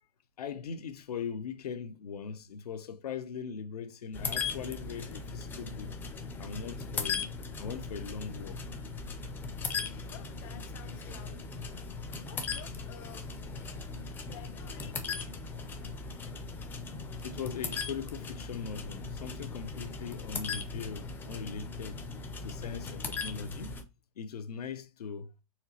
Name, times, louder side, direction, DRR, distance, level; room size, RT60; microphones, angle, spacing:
voice 1, 0.4-5.9 6.4-7.3 7.6-8.7 17.2-22.0 22.4-23.7 24.2-25.3, left 6 dB, 85° left, 0.7 m, -40 dB
sound 1, 4.1-23.8, left 4 dB, 10° left, 0.4 m, -38 dB
voice 2, 10.1-11.6 12.2-13.4 14.2-15.1, left 10 dB, 50° left, 0.7 m, -52 dB
4.3 x 2.9 x 2.8 m
hypercardioid pair, 140°, 19 cm